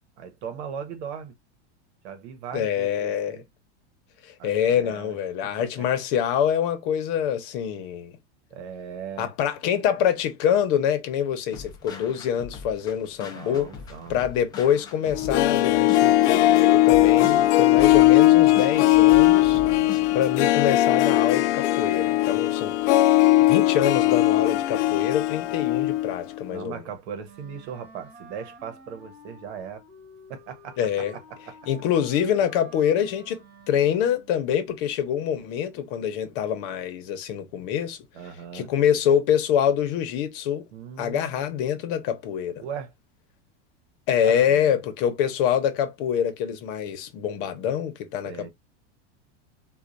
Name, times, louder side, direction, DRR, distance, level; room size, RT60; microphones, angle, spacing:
voice 1, 0.2-1.3 2.0-3.4 4.4-5.2 5.4-5.9 8.5-9.3 13.3-14.2 16.9-17.5 19.5-20.0 26.5-29.8 30.3-31.6 38.1-38.7 40.7-41.9 42.6-42.9 44.2-44.8 48.2-48.5, right 7 dB, 65° right, 1.1 m, -39 dB
voice 2, 2.5-3.4 4.2-8.1 9.2-13.7 14.1-19.6 20.1-22.7 23.4-26.8 30.8-31.1 31.7-38.0 38.5-40.7 41.0-42.6 44.1-48.5, left 9 dB, 50° left, 1.0 m, -25 dB
sound 1, 11.5-20.3, left 5 dB, 10° left, 0.5 m, -41 dB
Harp, 15.1-26.2 26.4-26.5, left 15 dB, 75° left, 0.5 m, -19 dB
Wind instrument woodwind instrument, 27.2-34.4, left 1 dB, 35° right, 2.1 m, -49 dB
4.4 x 2.4 x 2.5 m
supercardioid pair, 160°, 35 cm